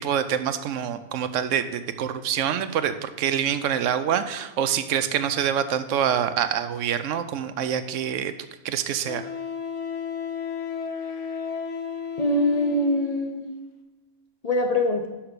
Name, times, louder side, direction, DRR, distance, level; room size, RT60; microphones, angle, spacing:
voice 1, 0.0-8.3 8.6-9.3, right 9 dB, 85° right, 11 dB, 0.9 m, -26 dB
Wind instrument woodwind instrument, 9.1-13.1, left 6 dB, 75° left, 1.1 m, -33 dB
voice 2, 12.2-13.5 14.4-15.1, left 1 dB, 40° left, 3 dB, 0.7 m, -23 dB
5.7 x 5.7 x 6.6 m, 1.1 s
omnidirectional pair, 1.3 m